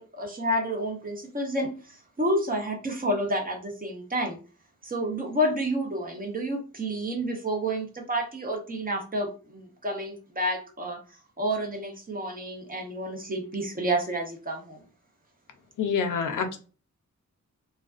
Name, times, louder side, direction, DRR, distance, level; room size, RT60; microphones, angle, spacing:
voice 1, 0.0-1.7 2.2-4.4 4.8-11.0 11.4-14.8, right 1 dB, 30° right, 2 dB, 0.5 m, -29 dB
voice 2, 15.8-16.6, left 6 dB, 85° left, 6 dB, 0.5 m, -27 dB
2.4 x 2.2 x 2.3 m, 0.36 s
wide cardioid pair, 155°, 30 cm